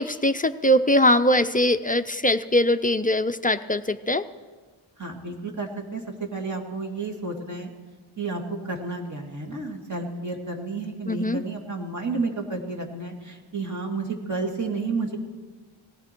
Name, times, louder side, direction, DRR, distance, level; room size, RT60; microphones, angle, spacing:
voice 1, 0.0-4.2 11.1-11.4, left 1 dB, 20° left, 10 dB, 0.4 m, -21 dB
voice 2, 5.0-7.7 8.2-15.2, right 3 dB, 35° right, 1 dB, 2.2 m, -31 dB
18.5 x 16.0 x 4.5 m, 1.4 s
wide cardioid pair, 125°, 48 cm